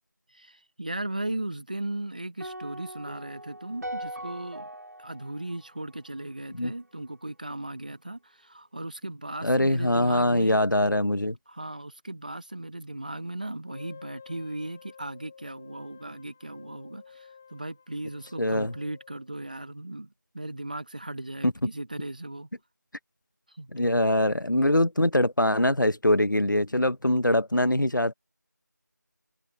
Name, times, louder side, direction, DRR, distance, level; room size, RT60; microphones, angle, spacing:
voice 1, 0.3-4.7 5.0-10.6 11.5-22.5 23.5-23.7, right 1 dB, 25° right, 1.4 m, -37 dB
sound 1, 2.4-6.7, right 1 dB, 65° right, 4.3 m, -41 dB
voice 2, 9.4-11.4 18.4-18.7 21.4-21.5 23.7-28.1, left 1 dB, 85° left, 1.1 m, -23 dB
Wind instrument woodwind instrument, 13.6-19.3, left 6 dB, 5° left, 1.6 m, -51 dB
open air
figure-of-eight pair, 175°, 10 cm